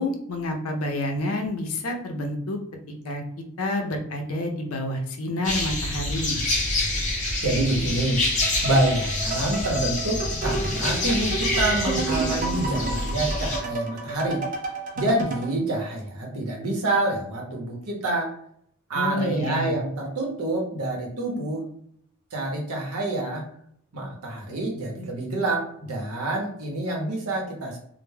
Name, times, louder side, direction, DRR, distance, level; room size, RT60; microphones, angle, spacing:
voice 1, 0.0-2.6 3.0-3.2 3.6-6.4 18.9-19.7, left 1 dB, 75° left, 3 dB, 0.5 m, -28 dB
sound 1, 5.4-13.6, left 2 dB, 35° left, 0.6 m, -27 dB
voice 2, 7.4-8.2 8.6-14.4 15.0-18.3 18.9-21.7 22.3-23.5 23.9-27.8, right 2 dB, 85° right, 0 dB, 0.7 m, -27 dB
sound 2, 8.4-15.5, right 3 dB, 40° right, 0.4 m, -31 dB
2.2 x 2.0 x 3.2 m, 0.68 s
head